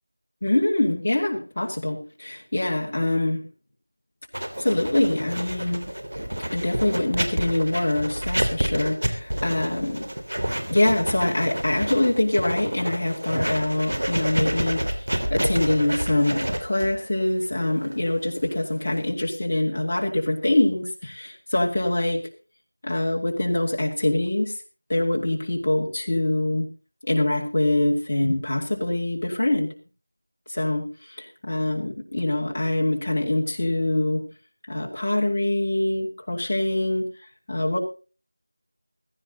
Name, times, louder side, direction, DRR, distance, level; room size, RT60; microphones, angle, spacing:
voice 1, 0.4-3.4 4.6-5.8 6.5-10.1 10.7-22.2 22.8-24.5 24.9-26.7 27.0-29.7 30.5-34.2 34.7-37.1 37.5-37.8, left 1 dB, 30° left, -2 dB, 2.5 m, -24 dB
Writing, 4.3-19.1, right 1 dB, 75° right, 3.2 m, -29 dB
15.5 x 14.5 x 4.0 m, 0.35 s
figure-of-eight pair, 175°, 0 cm